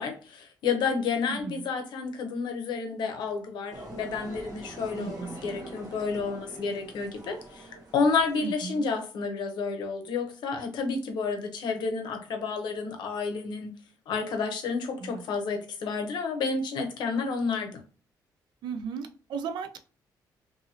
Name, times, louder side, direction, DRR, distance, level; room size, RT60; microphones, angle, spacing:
voice 1, 0.0-13.7 14.1-17.8, left 4 dB, 80° left, 5 dB, 0.7 m, -30 dB
voice 2, 1.3-1.7 4.9-5.5 8.4-8.9 15.0-15.2 18.6-19.8, right 5 dB, 80° right, 8 dB, 0.4 m, -36 dB
sound 1, 3.7-8.8, right 1 dB, 50° right, 0.8 m, -44 dB
2.8 x 2.6 x 2.7 m, 0.38 s
cardioid pair, 135°, 8 cm